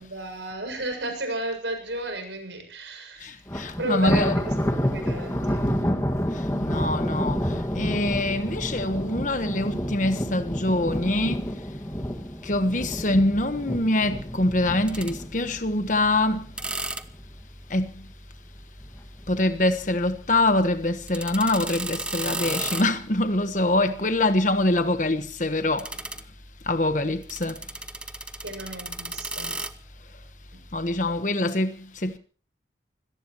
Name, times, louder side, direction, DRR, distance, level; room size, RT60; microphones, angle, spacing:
voice 1, 0.0-3.3 3.7-4.5 4.9-5.6 28.4-29.6 30.5-30.6, right 1 dB, 75° right, 7.3 m, -33 dB
voice 2, 3.2-4.4 5.8-5.9 6.6-7.4 7.7-11.4 12.4-16.5 17.7-18.0 19.3-25.9 26.7-27.5 30.7-32.2, left 2 dB, 45° left, 1.3 m, -24 dB
Thunder, 3.5-16.8 17.1-17.4 17.8-17.9 18.8-19.4, equal, 15° left, 1.9 m, -29 dB
sound 1, 14.5-31.2, right 2 dB, 5° right, 0.8 m, -38 dB
25.5 x 18.0 x 3.1 m
head